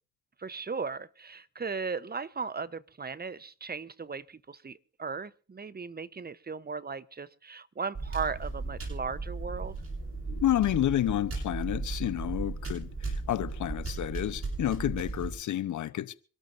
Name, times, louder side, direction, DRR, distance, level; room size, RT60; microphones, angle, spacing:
voice 1, 0.4-9.7, right 5 dB, 30° right, 1.0 m, -37 dB
sound 1, 7.9-15.3, right 3 dB, 45° right, 7.8 m, -36 dB
voice 2, 10.3-16.1, left 12 dB, 65° left, 1.0 m, -30 dB
26.0 x 13.0 x 2.7 m
hypercardioid pair, 50°, 32 cm